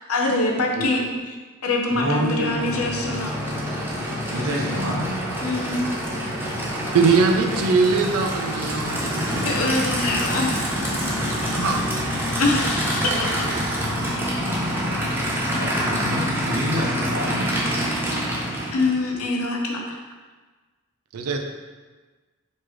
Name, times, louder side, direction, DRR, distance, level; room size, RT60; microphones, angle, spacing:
voice 1, 0.1-1.4 1.6-3.4 5.4-5.8 9.5-10.7 12.4-13.3 18.7-20.0, left 2 dB, 75° left, 0 dB, 0.7 m, -24 dB
voice 2, 1.9-2.8 4.3-5.1 6.8-6.9 15.4-17.5, equal, 65° right, -4 dB, 1.1 m, -27 dB
Aircraft / Idling, 2.1-19.1, equal, 10° right, 0.6 m, -26 dB
voice 3, 6.9-9.1 11.5-11.9 21.1-21.4, right 4 dB, 90° right, 3 dB, 0.5 m, -21 dB
4.4 x 3.1 x 3.1 m, 1.3 s
head